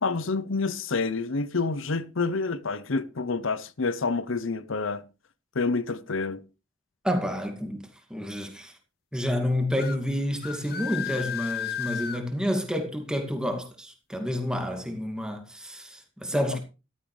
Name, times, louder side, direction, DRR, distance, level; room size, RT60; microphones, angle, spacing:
voice 1, 0.0-5.0 5.5-6.4, left 4 dB, 80° left, 0.8 m, -28 dB
voice 2, 7.0-8.7 9.1-16.6, equal, 5° right, 2.2 m, -29 dB
sound 1, 9.7-10.0 10.4-12.2, left 8 dB, 50° left, 1.0 m, -33 dB
14.5 x 12.5 x 3.3 m
head